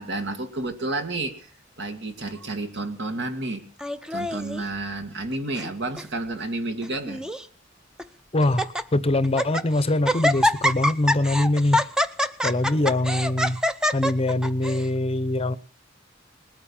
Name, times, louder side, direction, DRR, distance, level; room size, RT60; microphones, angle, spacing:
voice 1, 0.0-1.5 1.8-3.6 4.1-7.2, right 2 dB, 65° right, 6 dB, 2.1 m, -30 dB
Laughter, 3.8-4.6 5.3-5.7 6.0-6.1 6.8-7.4 8.0-8.1 8.4-8.8 9.2-9.7 10.0-14.8, left 1 dB, 5° right, 0.7 m, -25 dB
voice 2, 8.3-11.8 12.4-13.6 13.9-15.6, left 2 dB, 30° left, 15 dB, 0.8 m, -23 dB
20.0 x 8.8 x 7.2 m, 0.41 s
head